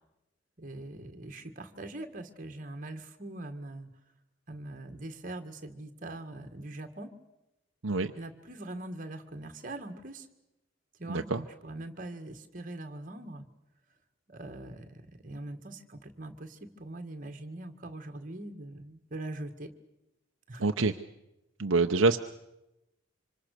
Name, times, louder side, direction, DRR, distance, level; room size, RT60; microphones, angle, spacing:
voice 1, 0.6-3.9 4.5-7.1 8.2-10.3 11.0-13.5 14.3-19.7 20.5-20.6, right 2 dB, 40° right, 7 dB, 1.9 m, -42 dB
voice 2, 11.1-11.4 20.6-20.9 21.6-22.2, right 3 dB, 65° right, 5 dB, 0.8 m, -26 dB
26.0 x 25.5 x 6.7 m, 0.92 s
head